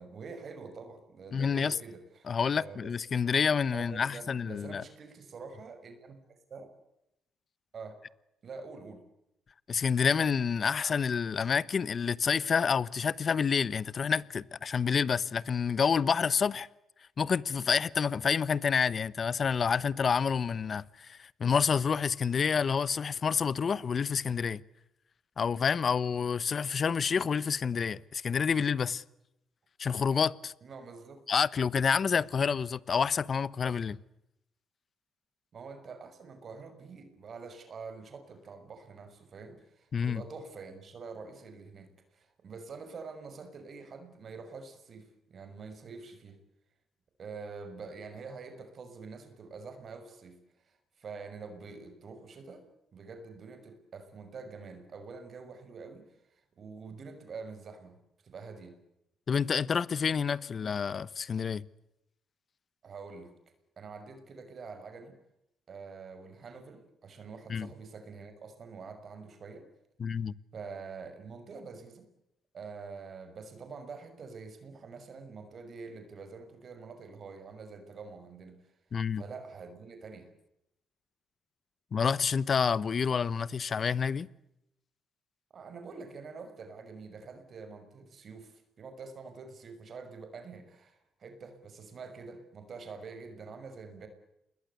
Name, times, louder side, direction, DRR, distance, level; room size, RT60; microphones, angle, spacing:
voice 1, 0.0-2.3 2.6-2.8 3.7-6.8 7.7-8.0 8.4-9.0 30.6-31.2 35.5-46.4 47.2-58.0 58.2-58.8 62.8-63.3 63.8-65.2 65.7-69.7 70.5-72.1 72.5-78.7 79.1-80.3 85.5-94.1, right 4 dB, 50° right, 6.2 m, -46 dB
voice 2, 1.3-1.7 2.3-4.8 9.7-16.7 17.2-24.6 25.4-29.0 29.8-30.5 31.3-34.0 39.9-40.2 59.3-61.6 67.5-67.7 70.0-70.3 78.9-79.2 81.9-84.3, left 6 dB, 45° left, 1.0 m, -28 dB
29.0 x 21.5 x 8.3 m
cardioid pair, 90°, 0 cm